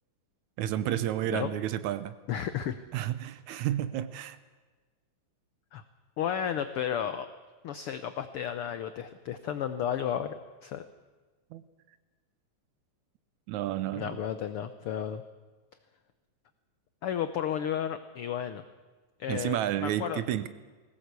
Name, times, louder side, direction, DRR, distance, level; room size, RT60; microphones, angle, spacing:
voice 1, 0.6-2.2 2.9-4.4 11.5-11.6 13.5-14.2 19.3-20.5, right 12 dB, 75° right, 14 dB, 2.0 m, -31 dB
voice 2, 2.3-2.7 5.7-5.8 6.2-7.3 7.6-10.4 10.6-10.8 14.0-15.2 17.0-18.6 19.2-20.2, left 9 dB, 85° left, 10 dB, 1.2 m, -33 dB
20.0 x 17.5 x 8.2 m, 1.4 s
omnidirectional pair, 3.6 m